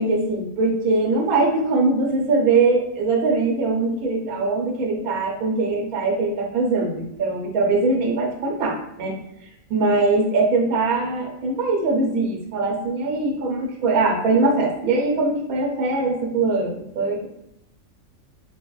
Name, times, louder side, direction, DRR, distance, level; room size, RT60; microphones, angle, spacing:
voice 1, 0.0-9.1 9.7-17.3, right 3 dB, 90° right, 1 dB, 1.1 m, -22 dB
3.2 x 2.0 x 2.3 m, 0.80 s
omnidirectional pair, 1.5 m